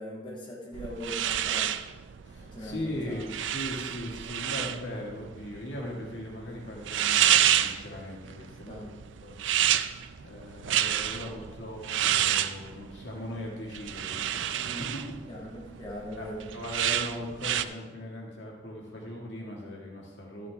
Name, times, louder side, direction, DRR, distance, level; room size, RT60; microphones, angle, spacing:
voice 1, 0.0-1.7 2.4-3.3 6.5-6.6 8.7-8.9 14.6-14.9 15.3-16.5, equal, 25° left, -5 dB, 2.3 m, -40 dB
sound 1, 0.7-17.6, right 11 dB, 80° right, 0.4 m, -29 dB
voice 2, 2.2-8.9 9.2-15.0 16.2-16.3 16.5-20.5, left 1 dB, 75° left, -2 dB, 1.8 m, -39 dB
12.5 x 8.2 x 3.4 m, 1.3 s
head